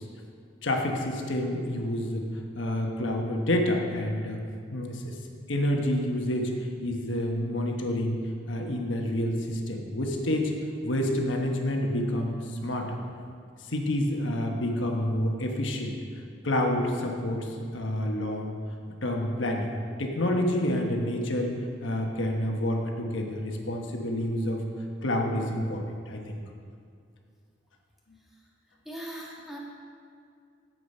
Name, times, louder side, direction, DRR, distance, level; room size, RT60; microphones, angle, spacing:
voice 1, 0.6-4.4 4.7-5.2 5.5-6.5 6.8-8.2 8.5-10.5 10.8-13.0 13.7-16.0 16.4-18.6 19.0-21.5 21.8-24.6 25.0-26.4, left 1 dB, 80° left, 1 dB, 1.2 m, -28 dB
voice 2, 28.8-29.6, equal, ahead, -5 dB, 1.5 m, -41 dB
9.8 x 7.7 x 5.4 m, 2.3 s
head